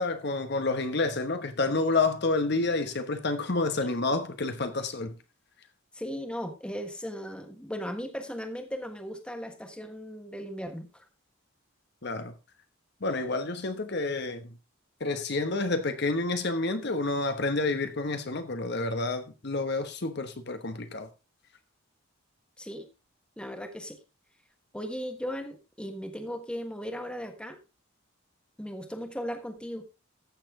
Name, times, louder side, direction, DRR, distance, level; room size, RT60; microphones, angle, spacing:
voice 1, 0.0-5.1 12.0-12.3 13.0-14.5 15.0-21.1, left 3 dB, 55° left, 1.1 m, -29 dB
voice 2, 5.9-11.1 22.6-22.9 23.4-24.0 24.7-27.6 28.6-29.9, equal, 5° left, 1.4 m, -37 dB
14.5 x 6.7 x 3.7 m
head